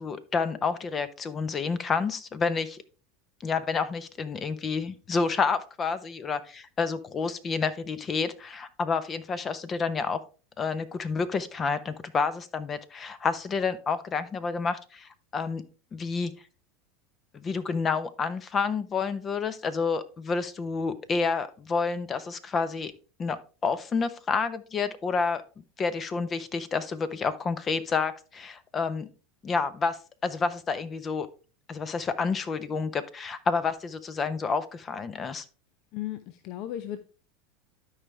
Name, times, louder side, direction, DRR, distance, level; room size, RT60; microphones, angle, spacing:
voice 1, 0.0-2.8 3.4-10.2 10.6-15.6 15.9-16.3 17.3-22.9 23.2-25.4 25.8-29.1 29.4-31.3 31.7-35.4, left 5 dB, 30° left, 0.9 m, -29 dB
voice 2, 35.9-37.0, left 12 dB, 55° left, 0.6 m, -35 dB
12.0 x 4.9 x 3.3 m
hypercardioid pair, 95°, 0 cm